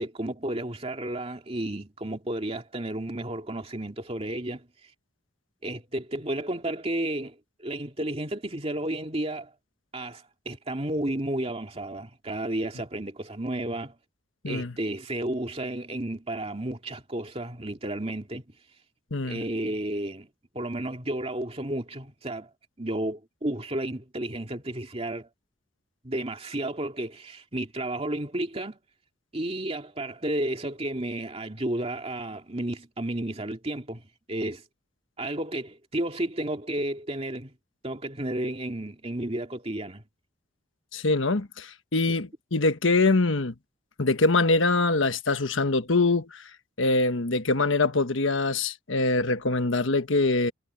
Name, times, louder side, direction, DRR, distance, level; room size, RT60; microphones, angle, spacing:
voice 1, 0.0-4.7 5.6-9.5 9.9-14.0 14.5-18.4 19.2-20.3 20.5-22.5 22.8-25.3 26.0-28.8 29.3-34.6 35.2-37.5 37.8-40.0 42.1-42.2, right 1 dB, 30° right, 2.5 m, -32 dB
voice 2, 14.4-14.7 19.1-19.4 40.9-43.5 44.0-46.4 46.8-50.5, left 3 dB, 75° left, 1.3 m, -24 dB
head